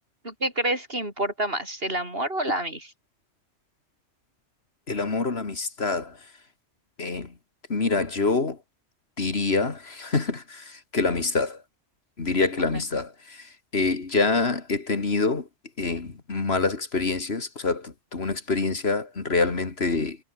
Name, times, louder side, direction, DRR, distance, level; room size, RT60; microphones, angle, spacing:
voice 1, 0.2-2.9, right 1 dB, 55° right, 7.9 m, -28 dB
voice 2, 4.9-6.2 7.0-7.3 7.7-8.6 9.2-11.6 12.2-15.5 15.8-20.2, left 3 dB, 65° left, 2.4 m, -26 dB
omnidirectional pair, 1.2 m